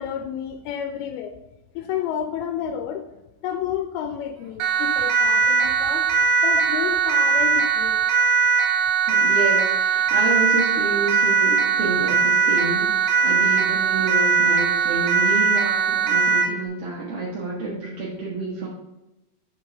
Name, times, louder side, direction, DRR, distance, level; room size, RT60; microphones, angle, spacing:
voice 1, 0.0-1.3 1.8-3.1 3.4-6.1 6.4-8.0, left 9 dB, 90° left, 6 dB, 2.5 m, -30 dB
Siren, 4.6-16.6, right 5 dB, 75° right, 2.7 m, -20 dB
voice 2, 9.1-18.7, right 3 dB, 55° right, -6 dB, 1.7 m, -29 dB
5.7 x 4.6 x 6.4 m, 0.96 s
omnidirectional pair, 4.3 m